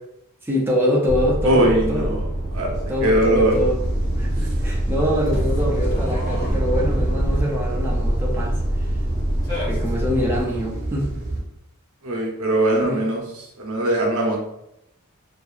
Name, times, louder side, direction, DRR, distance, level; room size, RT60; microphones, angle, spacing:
voice 1, 0.4-2.1 2.9-3.8 4.2-8.6 9.7-11.1 12.8-13.0, equal, 10° right, -4 dB, 0.4 m, -24 dB
sound 1, 1.1-10.4, right 1 dB, 15° left, 0.9 m, -24 dB
voice 2, 1.4-2.2 2.5-2.7 3.0-3.5 12.0-13.2 13.6-14.4, right 1 dB, 70° right, 0 dB, 0.7 m, -20 dB
sound 2, 3.4-11.4, right 1 dB, 35° right, 0.7 m, -32 dB
2.7 x 2.5 x 2.3 m, 0.81 s
head